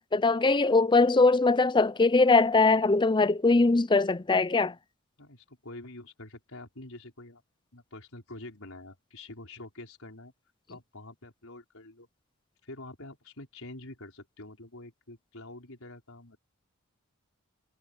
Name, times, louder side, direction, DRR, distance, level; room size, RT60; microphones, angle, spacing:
voice 1, 0.0-4.8, left 3 dB, 20° left, 0.5 m, -22 dB
voice 2, 5.2-7.4 7.7-10.3 10.7-12.1 12.6-16.4, left 2 dB, 70° left, 5.2 m, -46 dB
head